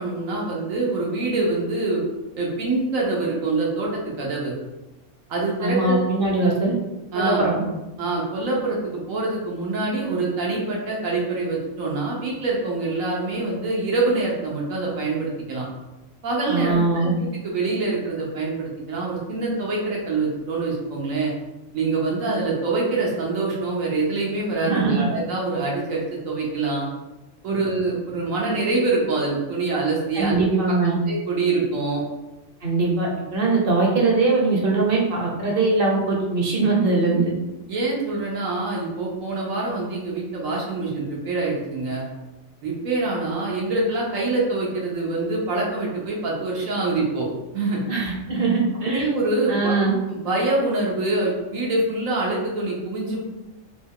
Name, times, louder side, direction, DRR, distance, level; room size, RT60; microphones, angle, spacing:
voice 1, 0.0-2.0 2.3-4.5 5.3-6.5 7.1-7.4 8.0-15.7 16.2-21.3 21.7-26.9 27.4-30.4 31.1-32.0 37.7-42.0 42.6-47.3 47.5-47.8 48.9-49.7 50.1-53.3, right 3 dB, 85° right, -3 dB, 1.3 m, -25 dB
voice 2, 5.6-6.7 7.1-7.6 16.5-17.1 24.6-25.1 30.1-31.0 32.6-37.3 47.9-49.1 49.5-49.9, right 3 dB, 50° right, -2 dB, 0.8 m, -21 dB
3.2 x 2.3 x 3.6 m, 1.0 s
omnidirectional pair, 1.3 m